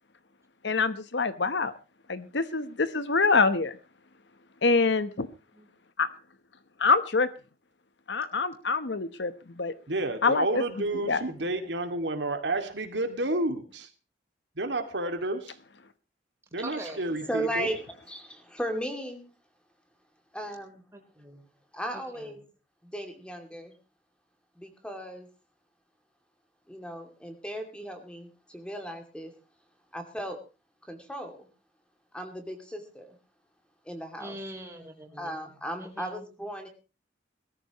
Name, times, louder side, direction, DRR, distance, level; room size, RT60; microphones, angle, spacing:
voice 1, 0.6-1.7 2.1-3.7 4.6-5.3 6.8-7.3 8.1-9.7 10.2-10.6 11.1-11.2, left 4 dB, 70° left, 13 dB, 1.0 m, -25 dB
voice 2, 9.9-13.9 14.6-15.5 16.5-17.7, right 2 dB, 70° right, 6 dB, 2.3 m, -30 dB
voice 3, 16.6-17.0 20.9-21.4 22.1-22.4 34.2-35.4 35.8-36.2, right 1 dB, 15° right, 3 dB, 3.9 m, -42 dB
voice 4, 17.3-19.3 20.3-20.8 21.7-22.4 22.8-23.7 24.6-25.3 26.7-29.3 29.9-30.4 30.9-31.5 32.1-33.2 33.8-34.4 35.1-36.7, right 1 dB, 5° left, 5 dB, 2.5 m, -36 dB
21.0 x 14.0 x 3.0 m, 0.31 s
head